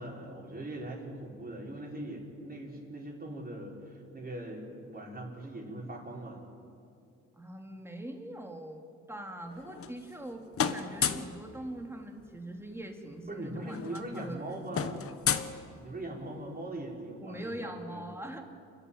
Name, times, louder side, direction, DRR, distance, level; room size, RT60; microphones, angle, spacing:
voice 1, 0.0-6.4 13.3-15.0 15.8-18.0, right 1 dB, 30° right, -2 dB, 5.6 m, -41 dB
voice 2, 7.4-14.6 14.9-15.2 17.2-18.4, right 1 dB, 10° right, 3 dB, 2.7 m, -42 dB
sound 1, 9.5-10.3 10.5-11.4 12.7-12.8 13.1-13.3 13.6-16.2, left 7 dB, 50° left, 1.3 m, -33 dB
29.0 x 11.5 x 9.2 m, 2.5 s
cardioid pair, 90°, 30 cm